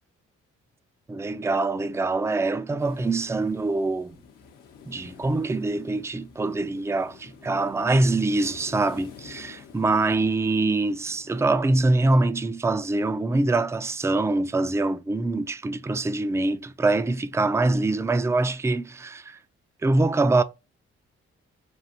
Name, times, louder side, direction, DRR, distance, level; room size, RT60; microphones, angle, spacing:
voice 1, 1.1-4.2 4.9-19.4 19.8-20.4, right 2 dB, 10° right, 0.4 m, -24 dB
sound 1, 2.8-11.5, left 6 dB, 75° left, 0.8 m, -49 dB
6.0 x 2.5 x 2.8 m
hypercardioid pair, 45°, 31 cm